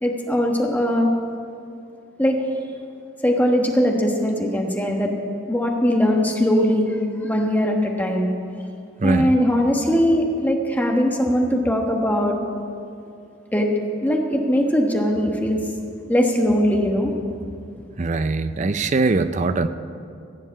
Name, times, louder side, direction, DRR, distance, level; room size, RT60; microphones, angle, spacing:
voice 1, 0.0-1.1 2.2-2.4 3.2-5.1 5.5-7.0 7.2-8.3 9.0-12.4 13.5-13.7 14.0-15.6 16.1-17.1, equal, 10° left, 1 dB, 1.2 m, -20 dB
voice 2, 9.0-9.4 18.0-19.7, right 3 dB, 35° right, 11 dB, 0.4 m, -21 dB
15.5 x 7.7 x 7.4 m, 2.5 s
head